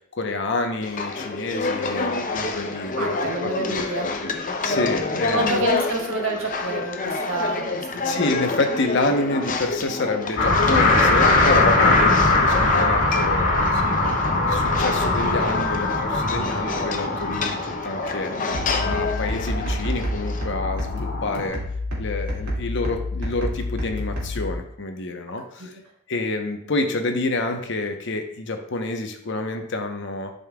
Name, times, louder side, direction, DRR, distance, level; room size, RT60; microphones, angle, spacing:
voice 1, 0.1-3.2 3.4-3.9 4.6-5.7 8.0-17.6 17.8-21.6 22.0-25.7 26.1-30.3, left 2 dB, 55° left, 5 dB, 0.9 m, -28 dB
sound 1, 0.8-20.5, left 3 dB, 40° left, 0.6 m, -28 dB
voice 2, 3.0-4.1 5.1-8.3 25.6-25.7, right 1 dB, 70° right, 0 dB, 1.6 m, -28 dB
sound 2, 10.4-21.5, left 2 dB, 85° left, 1.9 m, -22 dB
sound 3, 18.5-24.5, left 1 dB, 90° right, 2.3 m, -29 dB
11.0 x 5.3 x 2.3 m, 0.69 s
head